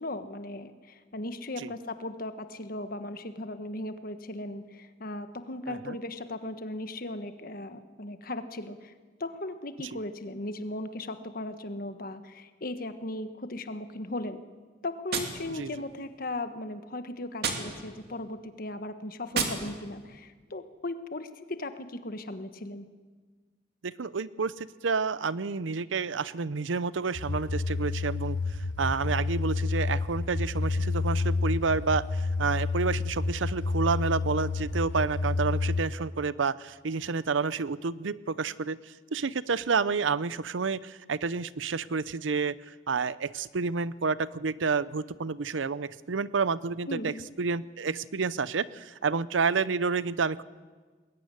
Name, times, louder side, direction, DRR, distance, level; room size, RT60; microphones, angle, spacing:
voice 1, 0.0-8.9 9.2-14.4 14.8-22.9 46.9-47.2, left 2 dB, 50° left, 9 dB, 1.4 m, -37 dB
Gunshot gunfire, 15.1-16.2 17.3-18.2 19.3-20.2, right 5 dB, 55° right, 2.9 m, -34 dB
voice 2, 23.8-38.8 39.1-47.1 47.4-50.4, right 4 dB, 90° right, 18 dB, 0.7 m, -29 dB
sound 1, 27.1-35.8, left 3 dB, 80° left, 1.0 m, -29 dB
21.0 x 19.5 x 9.8 m, 1.4 s
head